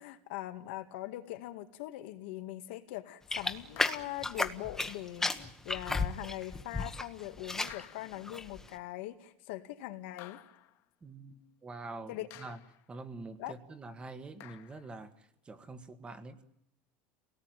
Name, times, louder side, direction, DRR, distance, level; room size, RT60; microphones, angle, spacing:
voice 1, 0.0-10.4 12.1-12.3 13.4-13.5, left 15 dB, 80° left, 7 dB, 2.1 m, -42 dB
sound 1, 3.3-4.9 5.2-7.1 7.3-7.8 8.3-8.6, left 3 dB, 10° left, 1.4 m, -33 dB
sound 2, 3.8-4.3 5.8-6.0 7.7-8.4 10.2-10.8 12.3-12.9 14.4-15.0, left 15 dB, 55° left, 1.9 m, -53 dB
voice 2, 11.0-12.6 12.9-15.1 15.5-16.4, right 3 dB, 20° right, 9 dB, 1.8 m, -45 dB
27.0 x 18.5 x 9.3 m, 0.77 s
supercardioid pair, 140°, 6 cm